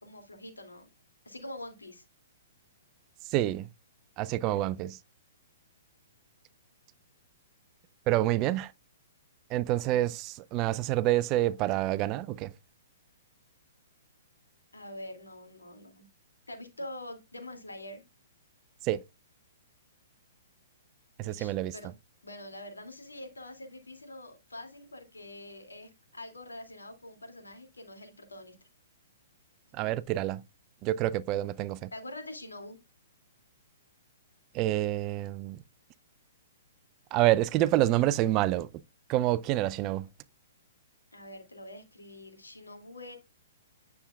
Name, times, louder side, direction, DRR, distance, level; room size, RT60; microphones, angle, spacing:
voice 1, 0.0-0.9 1.2-2.0 14.7-16.1 16.5-18.0 21.2-21.9 22.2-28.6 31.9-32.8 41.1-43.2, left 1 dB, 85° left, 2.5 m, -45 dB
voice 2, 3.3-3.7 4.2-5.0 8.1-8.7 9.5-12.5 18.8-19.0 21.2-21.7 29.7-30.4 30.8-31.9 34.5-35.6 37.1-38.7 39.1-40.1, right 15 dB, 35° right, 0.4 m, -27 dB
9.9 x 7.0 x 2.3 m
figure-of-eight pair, 120°, 0 cm